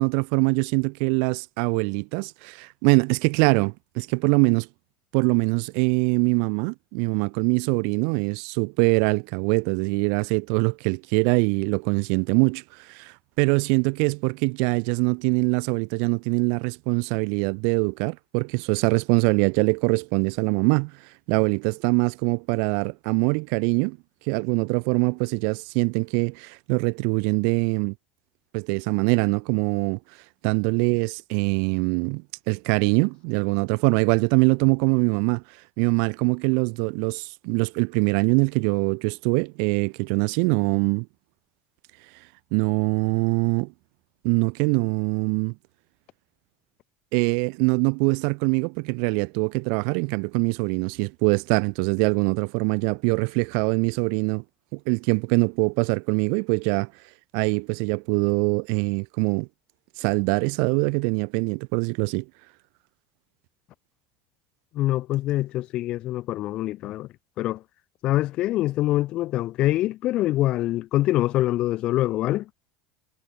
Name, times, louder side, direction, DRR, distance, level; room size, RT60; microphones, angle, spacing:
voice 1, 0.0-4.7 5.1-20.9 21.3-24.0 24.3-27.9 28.5-30.0 30.4-35.4 35.8-41.1 42.5-43.7 44.2-45.5 47.1-54.4 54.7-56.9 57.3-59.5 60.0-62.2, right 40 dB or more, 70° right, 1.0 m, -23 dB
voice 2, 64.7-67.1 67.4-67.6 68.0-72.4, left 15 dB, 50° left, 3.0 m, -24 dB
supercardioid pair, 125°, 2 cm